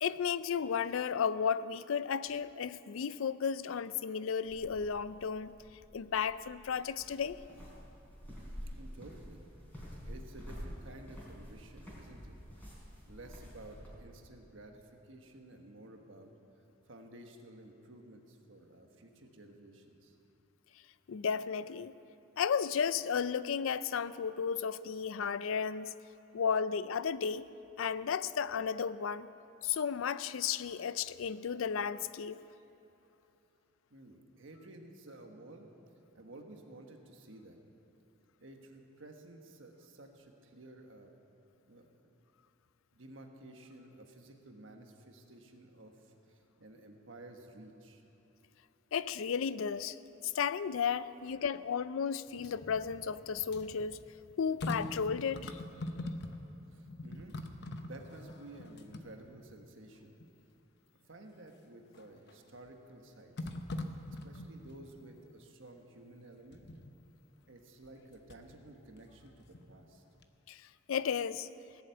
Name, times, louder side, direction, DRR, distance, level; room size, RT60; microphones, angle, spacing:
voice 1, 0.0-5.6 5.9-7.4 21.1-21.9 22.4-25.9 26.3-27.4 27.8-29.3 29.6-32.4 48.9-50.0 50.2-54.0 54.4-55.6 70.5-70.6 70.9-71.5, left 7 dB, 75° left, 16 dB, 0.4 m, -33 dB
sound 1, 4.4-14.0, equal, 10° left, 4.1 m, -49 dB
voice 2, 8.5-9.4 10.0-12.4 13.0-16.3 16.9-20.1 33.9-35.7 36.1-37.6 38.4-41.1 41.7-42.1 42.9-48.0 56.7-57.3 57.8-60.2 61.1-63.5 64.2-66.7 67.5-70.0, right 1 dB, 65° right, 3 dB, 1.4 m, -53 dB
sound 2, 52.3-56.6 56.8-59.7 60.2-60.3 61.9-62.4 63.4-64.9 66.5-66.9 67.8-68.6 69.0-70.0 70.2-70.3, left 1 dB, 55° left, 0.8 m, -43 dB
18.0 x 7.4 x 8.3 m, 3.0 s
head